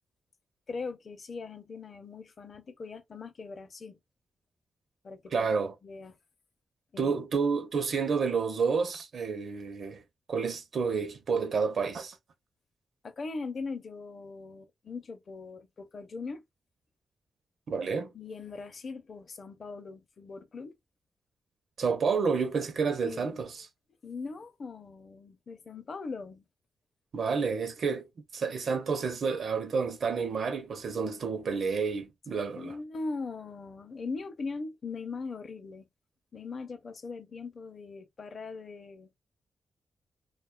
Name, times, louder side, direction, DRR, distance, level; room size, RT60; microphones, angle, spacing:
voice 1, 0.7-4.0 5.0-5.5 5.8-6.2 6.9-7.1 13.0-16.4 18.1-20.8 23.0-23.4 24.0-26.5 32.6-35.9 36.3-39.1, left 4 dB, 50° left, 0.6 m, -40 dB
voice 2, 5.3-5.7 7.0-10.0 10.3-12.2 17.7-18.1 21.8-23.7 27.1-32.7, right 5 dB, 60° right, 0.6 m, -30 dB
2.7 x 2.2 x 2.2 m
cardioid pair, 105°, 0 cm